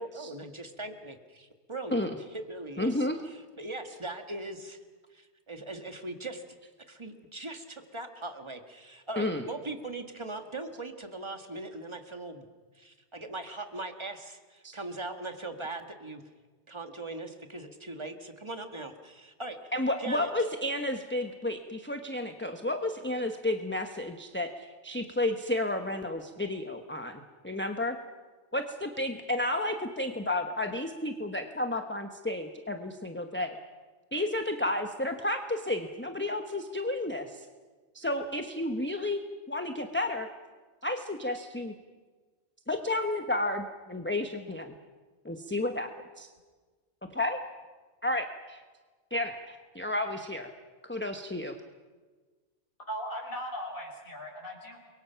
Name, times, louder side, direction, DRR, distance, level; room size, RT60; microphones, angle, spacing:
voice 1, 0.0-4.8 5.1-6.4 6.9-12.4 12.8-16.2 16.7-19.6 20.0-20.3, right 2 dB, 25° right, 6 dB, 1.8 m, -40 dB
voice 2, 2.8-3.2 9.2-9.4 14.6-14.7 19.7-28.0 28.5-33.6 34.1-37.5 37.9-39.2 39.5-40.3 40.8-41.7 42.7-44.7 45.2-45.9 46.2-46.3 47.1-47.4 48.0-48.6 49.1-50.5 50.8-51.5, left 1 dB, 10° left, 5 dB, 1.1 m, -32 dB
voice 3, 52.9-54.8, equal, 50° left, -1 dB, 5.1 m, -38 dB
29.5 x 23.0 x 5.8 m, 1.4 s
omnidirectional pair, 1.2 m